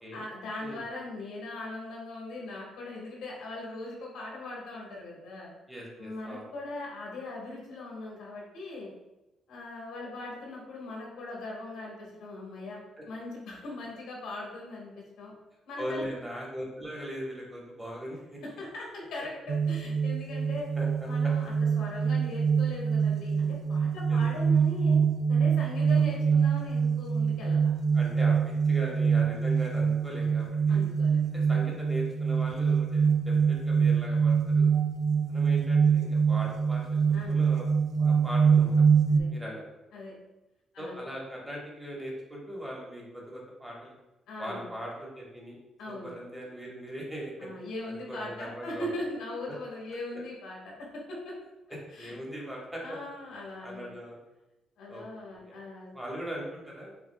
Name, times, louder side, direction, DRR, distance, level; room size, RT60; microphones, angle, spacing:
voice 1, 0.1-5.5 6.0-8.9 9.5-12.8 13.1-15.3 15.7-16.1 18.4-20.7 21.0-25.0 25.3-27.7 30.7-31.7 37.1-37.3 39.1-39.3 39.9-40.2 40.7-41.0 44.3-44.7 45.8-46.1 47.4-51.3 51.9-52.1 52.8-53.9 54.8-55.9, left 2 dB, 85° left, -3 dB, 1.4 m, -40 dB
voice 2, 5.7-6.5 13.0-13.1 15.8-18.4 20.8-21.3 24.1-24.2 25.9-26.0 27.9-30.8 31.3-34.7 35.3-37.0 37.3-37.7 38.0-38.9 39.3-39.6 40.8-44.0 44.4-45.6 45.9-47.5 47.9-48.9 52.0-53.0 53.6-54.2 54.9-55.0 55.4-55.6 55.9-57.0, equal, 10° right, -3 dB, 1.3 m, -40 dB
sound 1, 19.5-39.2, right 6 dB, 60° right, 0.3 m, -25 dB
5.8 x 2.5 x 2.2 m, 0.99 s
cardioid pair, 90°, 0 cm